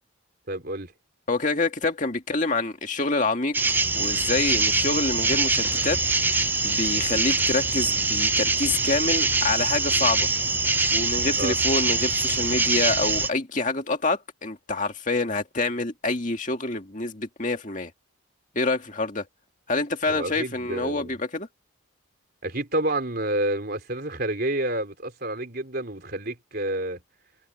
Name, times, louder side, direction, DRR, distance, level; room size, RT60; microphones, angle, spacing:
voice 1, 0.5-0.9 11.4-11.6 20.1-21.1 22.4-27.0, right 1 dB, 45° right, 4.0 m, -29 dB
voice 2, 1.3-3.6 3.9-10.3 10.9-17.9 18.5-19.3 19.7-21.5, left 3 dB, 35° left, 2.1 m, -27 dB
sound 1, 3.5-13.3, right 3 dB, 10° right, 0.4 m, -24 dB
head